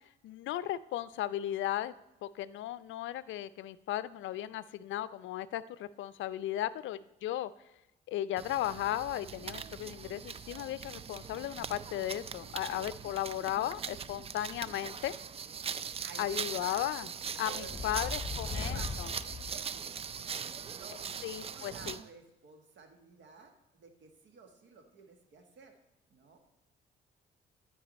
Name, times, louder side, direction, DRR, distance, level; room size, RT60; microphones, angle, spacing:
voice 1, 0.2-1.9 2.2-7.5 8.1-15.1 16.2-17.1 17.4-19.1 21.2-22.0, left 13 dB, 75° left, 17 dB, 0.4 m, -36 dB
sound 1, 8.4-22.1, right 7 dB, 30° right, 0.3 m, -41 dB
voice 2, 16.0-16.9 17.5-18.1 18.5-18.9 19.5-19.9 20.6-21.2 21.5-25.7 26.1-26.4, right 4 dB, 65° right, 5 dB, 1.5 m, -52 dB
sound 2, 17.5-20.3, left 4 dB, 30° left, 1.1 m, -39 dB
12.5 x 4.8 x 4.1 m, 0.96 s
cardioid pair, 90°, 20 cm